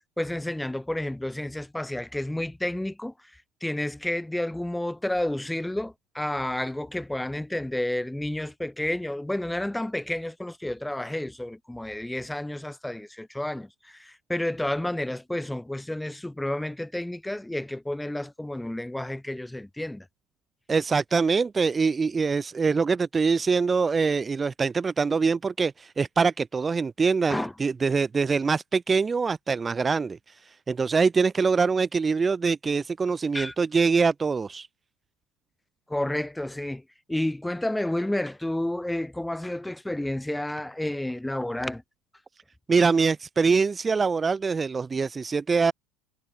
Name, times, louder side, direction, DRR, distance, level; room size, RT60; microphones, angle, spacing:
voice 1, 0.2-3.1 3.6-20.1 27.3-27.5 33.3-33.5 35.9-36.8 37.1-41.8, left 1 dB, 5° left, 5.2 m, -30 dB
voice 2, 20.7-34.7 42.7-45.7, right 5 dB, 25° right, 1.4 m, -24 dB
supercardioid pair, 95°, 0 cm